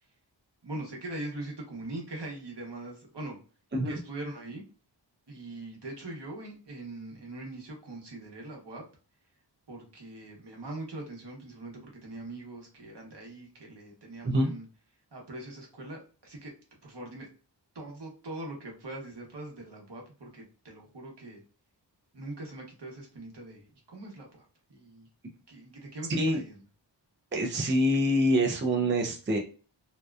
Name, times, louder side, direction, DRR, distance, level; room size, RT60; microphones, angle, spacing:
voice 1, 0.6-3.4 3.9-4.6 5.3-8.8 9.7-14.6 15.1-16.5 16.8-17.3 17.7-21.4 22.1-25.1 25.5-26.6, right 2 dB, 65° right, -1 dB, 1.0 m, -42 dB
voice 2, 27.3-29.4, equal, 25° right, 1 dB, 0.5 m, -25 dB
2.8 x 2.2 x 2.2 m, 0.37 s
wide cardioid pair, 65°, 45 cm